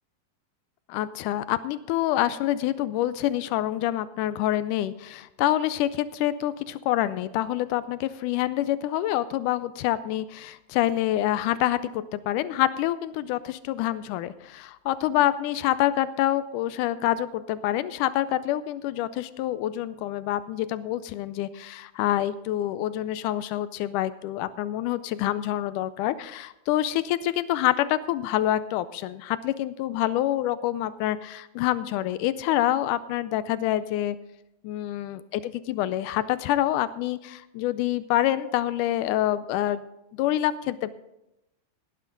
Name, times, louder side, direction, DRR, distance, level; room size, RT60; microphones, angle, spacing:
voice 1, 0.9-34.2 34.6-39.9 40.1-40.9, left 13 dB, 80° left, 14 dB, 1.9 m, -26 dB
17.5 x 9.8 x 3.9 m, 0.89 s
omnidirectional pair, 3.9 m